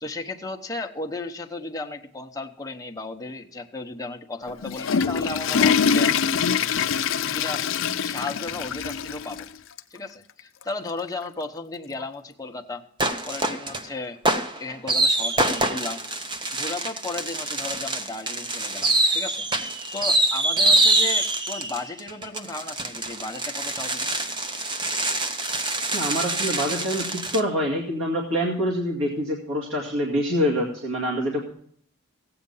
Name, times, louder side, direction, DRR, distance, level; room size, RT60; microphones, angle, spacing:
voice 1, 0.0-6.1 7.2-9.5 9.9-12.8 13.3-14.2 14.6-16.0 16.5-19.5 19.9-24.2, left 3 dB, 15° left, 3 dB, 1.1 m, -35 dB
Water / Toilet flush, 4.5-9.5 9.8-9.9 10.6-10.7 12.0-12.1, left 6 dB, 65° left, 0.6 m, -24 dB
sound 1, 13.0-13.8 14.2-27.4, right 2 dB, 25° right, 0.9 m, -25 dB
voice 2, 25.9-31.5, equal, 70° right, -2 dB, 2.2 m, -26 dB
15.5 x 8.8 x 5.6 m, 0.63 s
head